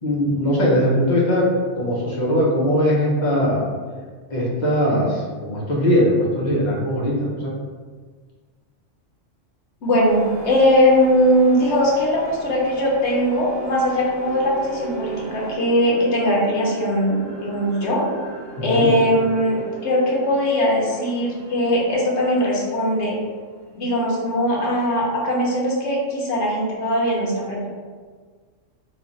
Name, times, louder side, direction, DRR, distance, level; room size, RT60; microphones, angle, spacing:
voice 1, 0.0-1.5 1.7-3.6 4.3-7.5 18.7-18.9, equal, 40° left, -5 dB, 0.8 m, -20 dB
voice 2, 9.8-18.0 18.6-23.2 23.7-27.7, equal, 65° left, -3 dB, 1.1 m, -20 dB
sound 1, 10.1-15.6, right 2 dB, 60° right, 0.4 m, -38 dB
sound 2, 12.9-24.7, right 5 dB, 25° right, 0.7 m, -38 dB
3.1 x 2.3 x 3.9 m, 1.5 s
omnidirectional pair, 1.3 m